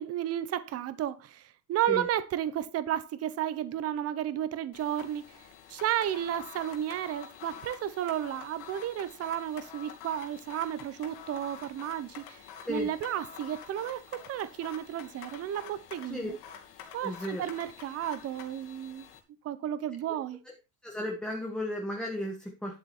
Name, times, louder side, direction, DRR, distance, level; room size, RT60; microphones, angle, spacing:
voice 1, 0.0-1.4 1.7-5.3 5.7-12.4 12.7-16.4 16.9-19.1 19.4-20.4, right 11 dB, 30° right, 0.9 m, -33 dB
sound 1, 4.7-19.2, left 7 dB, 50° left, 2.8 m, -48 dB
voice 2, 17.0-17.5 20.4-20.5 20.8-22.8, left 1 dB, ahead, 1.4 m, -34 dB
11.5 x 8.0 x 4.2 m
cardioid pair, 180°, 49 cm